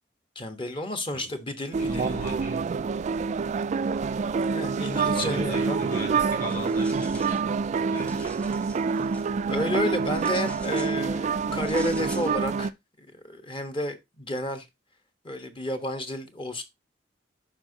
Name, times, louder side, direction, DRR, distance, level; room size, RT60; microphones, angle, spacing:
voice 1, 0.3-2.1 4.3-5.8 9.4-12.7 13.0-14.7 15.2-16.6, left 1 dB, 30° left, 1.1 m, -31 dB
sound 1, 1.7-12.7, right 5 dB, 40° right, 0.3 m, -27 dB
voice 2, 1.8-2.6 4.9-7.6 7.9-8.4, left 1 dB, 45° left, 5.4 m, -38 dB
sound 2, 6.3-7.5 7.8-9.3 10.1-11.0 11.6-12.3, equal, 5° left, 1.1 m, -46 dB
11.5 x 4.5 x 2.8 m
head